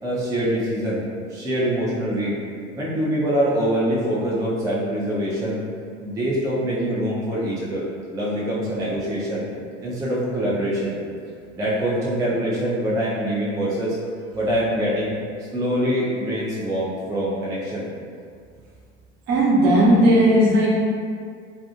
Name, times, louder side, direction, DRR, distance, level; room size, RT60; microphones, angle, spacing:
voice 1, 0.0-1.0 1.3-2.4 2.8-5.6 6.0-7.9 8.1-9.4 9.8-11.0 11.5-14.0 14.3-15.1 15.5-17.9, equal, 10° right, -6 dB, 0.4 m, -24 dB
voice 2, 19.3-20.7, right 1 dB, 45° right, -6 dB, 0.8 m, -16 dB
2.6 x 2.3 x 2.5 m, 2.2 s
figure-of-eight pair, 70°, 36 cm